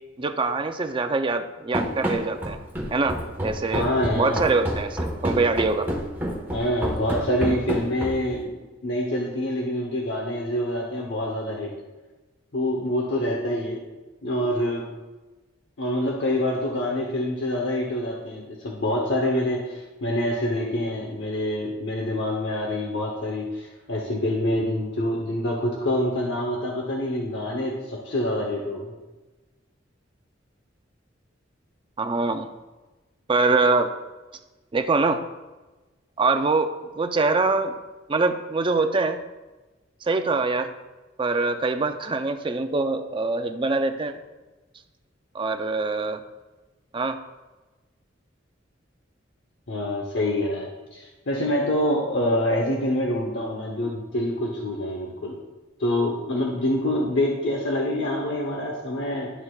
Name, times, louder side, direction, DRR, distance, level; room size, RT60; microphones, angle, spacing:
voice 1, 0.2-2.6 2.9-3.9 4.1-5.9 32.0-32.5 33.3-33.9 34.7-35.2 36.2-37.7 38.1-39.2 40.0-40.7 41.2-44.2 45.3-46.2 46.9-47.2, right 3 dB, 25° right, 7 dB, 0.5 m, -24 dB
Run, 1.7-8.4, equal, 10° right, 1.2 m, -29 dB
voice 2, 3.7-4.4 6.5-8.5 8.8-11.7 12.5-13.8 14.2-14.9 15.8-28.9 49.7-55.4 55.8-59.3, left 1 dB, 65° left, -1 dB, 0.9 m, -26 dB
11.0 x 6.6 x 2.4 m, 1.2 s
head